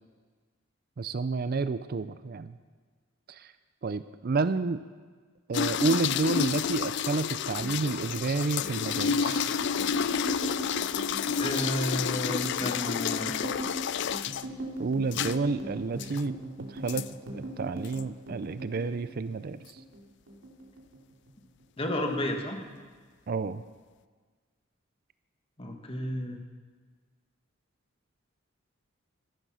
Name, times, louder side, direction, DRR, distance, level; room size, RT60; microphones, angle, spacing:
voice 1, 1.0-2.6 3.3-3.5 3.8-4.8 5.5-9.5 14.8-16.4 16.7-17.0 17.3-19.6 23.3-23.6, right 4 dB, 50° right, 13 dB, 0.5 m, -30 dB
sound 1, 5.5-14.4 15.1-15.4 16.0-16.2 16.9-17.1 17.8-18.0, left 7 dB, 60° left, 0.4 m, -30 dB
sound 2, 7.6-20.0 20.3-21.3 21.6-22.0 22.3-22.9, right 1 dB, 80° right, 2.8 m, -40 dB
voice 2, 11.3-13.4 21.8-22.6 25.6-26.4, left 1 dB, 30° left, 3 dB, 1.7 m, -32 dB
14.5 x 12.0 x 6.3 m, 1.5 s
head